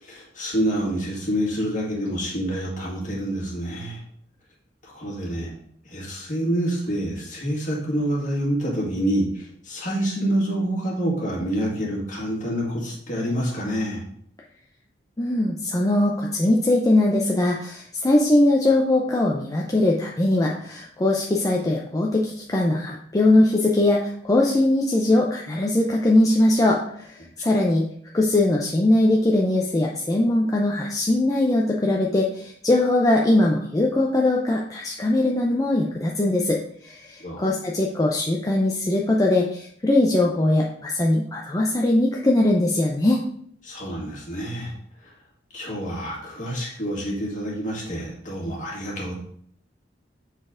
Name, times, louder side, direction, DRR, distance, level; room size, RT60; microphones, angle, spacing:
voice 1, 0.0-4.0 4.8-5.5 5.8-14.0 37.2-37.5 43.6-44.7 45.0-45.2 45.5-49.1, equal, 45° left, -3 dB, 2.1 m, -27 dB
voice 2, 15.2-27.9 28.1-43.2, left 1 dB, 20° left, -2 dB, 0.5 m, -21 dB
7.1 x 4.1 x 3.7 m, 0.65 s
head